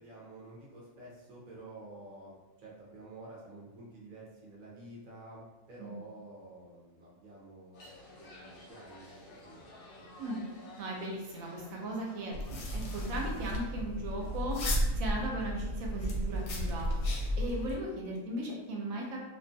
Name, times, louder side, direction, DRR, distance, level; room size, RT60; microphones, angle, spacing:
voice 1, 0.0-10.1, right 2 dB, 50° right, -4 dB, 0.6 m, -50 dB
sound 1, 7.7-13.3, left 2 dB, 90° left, 1.1 m, -53 dB
voice 2, 10.8-14.6 14.9-19.2, right 1 dB, 75° right, -1 dB, 1.0 m, -37 dB
sound 2, 12.3-17.7, equal, 65° left, 0.8 m, -33 dB
2.4 x 2.3 x 2.6 m, 1.1 s
omnidirectional pair, 1.5 m